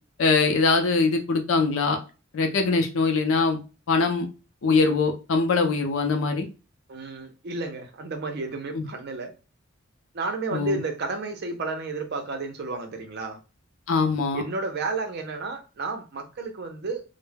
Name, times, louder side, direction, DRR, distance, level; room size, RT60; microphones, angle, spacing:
voice 1, 0.2-2.0 2.3-3.6 3.9-4.3 4.6-6.5 8.7-8.9 10.5-10.8 13.9-14.4, left 4 dB, 75° left, 0.5 m, -22 dB
voice 2, 6.9-9.3 10.1-13.4 14.3-17.0, right 3 dB, 55° right, 0.5 m, -32 dB
2.2 x 2.0 x 3.2 m
head